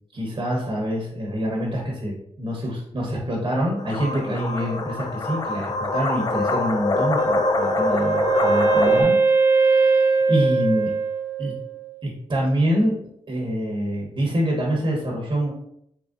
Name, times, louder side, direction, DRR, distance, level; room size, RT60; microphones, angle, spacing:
voice 1, 0.1-9.2 9.4-10.9 11.4-11.5 12.0-13.0 13.3-15.5, equal, 40° right, -2 dB, 1.0 m, -26 dB
sound 1, 3.8-9.0, left 3 dB, 35° left, 0.4 m, -24 dB
Wind instrument woodwind instrument, 7.2-12.0, right 4 dB, 20° right, 0.5 m, -21 dB
3.6 x 3.2 x 2.4 m, 0.73 s
cardioid pair, 65°, 12 cm